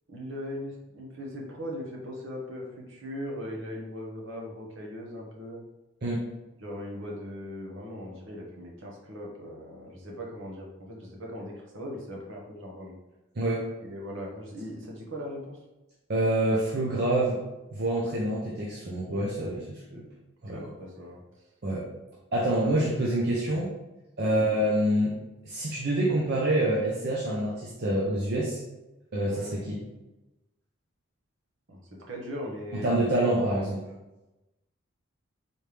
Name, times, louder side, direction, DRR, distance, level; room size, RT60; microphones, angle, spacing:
voice 1, 0.1-5.6 6.6-13.0 13.8-15.6 20.5-21.2 22.6-22.9 23.5-23.6 24.2-24.4 29.2-29.5 31.7-31.8 32.1-33.7, equal, 65° right, -2 dB, 1.1 m, -39 dB
voice 2, 13.4-13.7 16.1-17.4 17.7-20.0 20.4-20.6 21.6-21.9 22.3-23.7 24.2-25.2 25.4-28.6 29.1-29.8 32.8-33.8, right 1 dB, 50° right, -5 dB, 0.7 m, -26 dB
4.2 x 3.3 x 3.4 m, 1.0 s
head